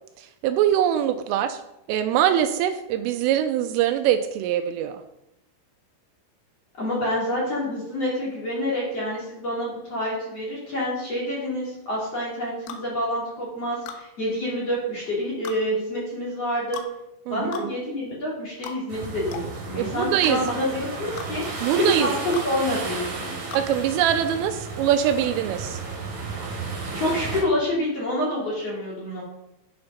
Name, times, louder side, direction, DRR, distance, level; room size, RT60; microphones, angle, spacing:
voice 1, 0.2-1.6 1.9-5.0 17.3-17.5 19.8-20.4 21.6-22.1 23.5-25.8, right 10 dB, 85° right, 8 dB, 3.1 m, -23 dB
voice 2, 6.8-16.8 17.3-21.4 21.8-23.3 26.9-29.2, left 1 dB, 40° left, -5 dB, 2.9 m, -27 dB
sound 1, 12.7-12.9 13.9-14.0 15.5-15.6 16.7-16.9 17.5-17.7 18.6-18.8 19.3-19.5 20.2-20.4 21.2-21.3 22.3-22.5 23.5-23.7, left 7 dB, 90° left, 3.7 m, -36 dB
sound 2, 18.9-27.4, right 3 dB, 50° right, 4.3 m, -33 dB
9.5 x 6.6 x 5.6 m, 0.88 s
omnidirectional pair, 5.9 m